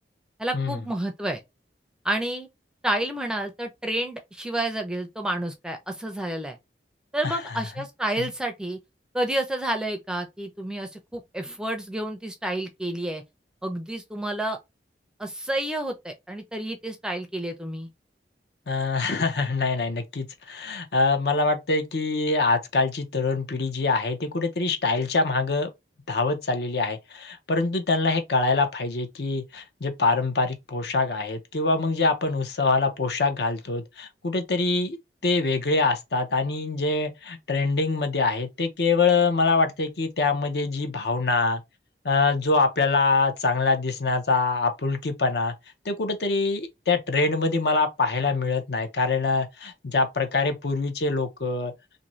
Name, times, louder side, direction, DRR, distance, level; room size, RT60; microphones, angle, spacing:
voice 1, 0.4-1.4 2.0-2.5 2.8-6.6 7.1-8.8 9.1-13.2 13.6-14.6 15.2-17.9, right 1 dB, 5° right, 0.4 m, -30 dB
voice 2, 7.2-7.6 8.2-8.3 18.7-25.7 26.1-35.0 35.2-41.6 42.0-45.5 45.8-51.7, left 3 dB, 65° left, 0.6 m, -24 dB
2.6 x 2.6 x 3.0 m
head